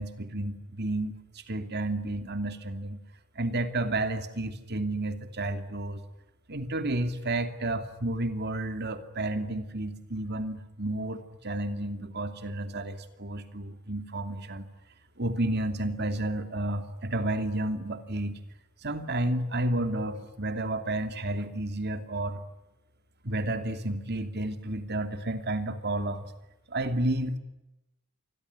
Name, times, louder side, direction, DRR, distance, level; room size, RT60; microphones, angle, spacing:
voice 1, 0.0-3.0 3.3-6.0 6.5-14.7 15.2-18.4 18.8-22.4 23.2-26.3 26.7-27.4, right 1 dB, 50° right, 8 dB, 2.8 m, -31 dB
28.0 x 21.5 x 9.7 m, 0.95 s
head